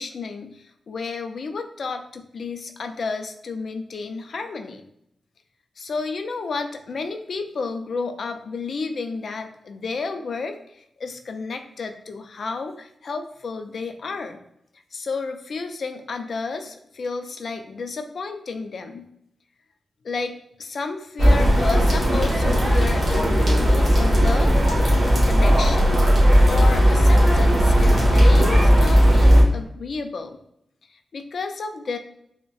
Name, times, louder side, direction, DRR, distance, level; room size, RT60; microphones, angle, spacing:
voice 1, 0.0-4.8 5.8-14.4 14.9-19.1 20.0-24.6 25.2-26.0 26.5-30.4 30.9-32.0, left 4 dB, 70° left, 7 dB, 0.4 m, -31 dB
sound 1, 21.2-29.4, equal, 50° right, 1.3 m, -16 dB
5.1 x 2.1 x 2.3 m, 0.74 s
cardioid pair, 65°, 0 cm